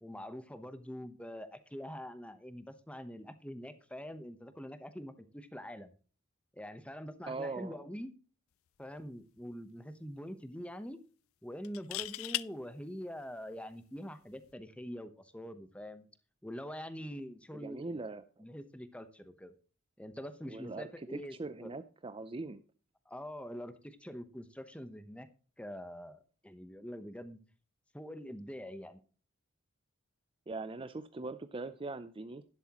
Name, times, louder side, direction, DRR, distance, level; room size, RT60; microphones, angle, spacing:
voice 1, 0.0-5.9 6.5-8.1 8.8-11.0 11.4-16.1 16.4-18.0 18.4-19.5 20.0-21.4 21.6-21.7 23.1-25.3 25.6-27.4 27.9-29.0, equal, 5° left, 11 dB, 0.9 m, -44 dB
voice 2, 7.3-7.8 17.5-18.2 20.5-22.6 30.5-32.4, right 3 dB, 25° right, 12 dB, 0.5 m, -41 dB
sound 1, 8.8-9.0 9.4-9.5 11.6-12.5 14.3-14.5, left 17 dB, 70° left, 0.4 m, -37 dB
11.5 x 11.0 x 3.0 m, 0.38 s
head